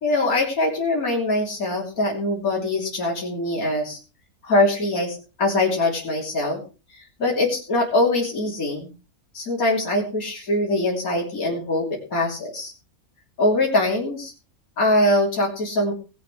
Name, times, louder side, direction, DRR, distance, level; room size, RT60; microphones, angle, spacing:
voice 1, 0.0-4.0 4.4-6.6 6.9-8.9 9.3-12.7 13.4-14.3 14.8-15.9, left 2 dB, 75° left, -2 dB, 3.6 m, -23 dB
19.0 x 8.5 x 4.8 m, 0.34 s
omnidirectional pair, 1.5 m